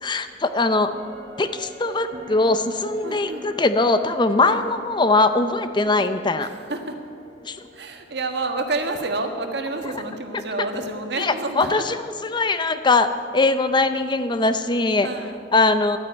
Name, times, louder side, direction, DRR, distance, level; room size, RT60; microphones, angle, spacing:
voice 1, 0.0-0.9 1.4-6.5 7.5-7.6 11.2-11.9 12.2-15.1 15.5-16.0, left 3 dB, 25° left, 10 dB, 0.6 m, -21 dB
sound 1, 0.9-10.4 10.7-10.8, left 1 dB, 35° right, 3.1 m, -44 dB
voice 2, 3.0-3.5 4.4-4.6 5.8-6.0 6.4-7.0 7.7-11.9 15.0-15.4, right 2 dB, 65° right, 5 dB, 1.5 m, -29 dB
12.0 x 9.7 x 8.9 m, 2.2 s
head